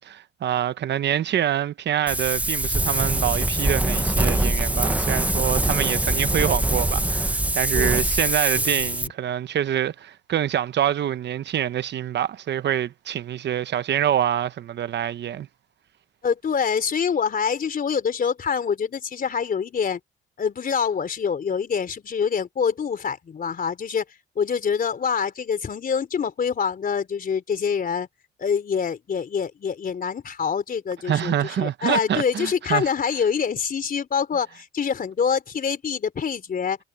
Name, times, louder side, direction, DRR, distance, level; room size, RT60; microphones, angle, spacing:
voice 1, 0.0-15.5 31.0-32.9, right 10 dB, 60° right, 1.0 m, -26 dB
Wind, 2.1-9.1, right 1 dB, 5° right, 1.0 m, -23 dB
voice 2, 8.5-9.0 16.2-20.0 20.4-24.0 24.4-28.1 28.4-36.8, left 6 dB, 45° left, 3.7 m, -25 dB
cardioid pair, 90°, 20 cm